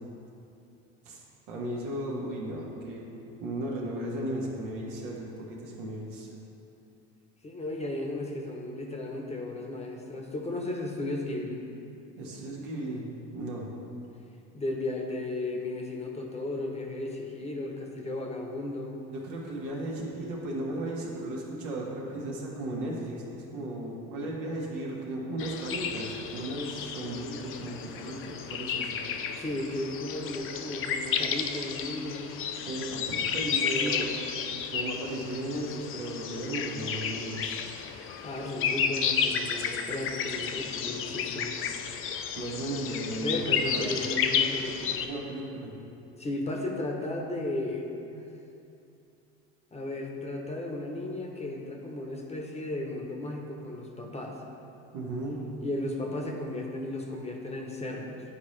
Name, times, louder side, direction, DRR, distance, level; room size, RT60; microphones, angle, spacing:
voice 1, 1.5-3.1 3.4-6.3 12.2-13.7 19.1-29.0 32.7-34.1 34.7-37.6 42.3-43.8 45.0-45.7 54.9-55.4, right 1 dB, 80° right, -3 dB, 1.5 m, -35 dB
voice 2, 7.4-11.6 14.5-19.0 29.4-32.3 33.4-34.1 38.2-41.6 43.2-45.0 46.2-48.3 49.7-54.4 55.6-58.2, left 2 dB, 20° left, 1 dB, 0.9 m, -35 dB
sound 1, 25.4-45.1, left 7 dB, 45° left, 0.5 m, -32 dB
9.7 x 4.3 x 3.3 m, 2.7 s
supercardioid pair, 95°, 31 cm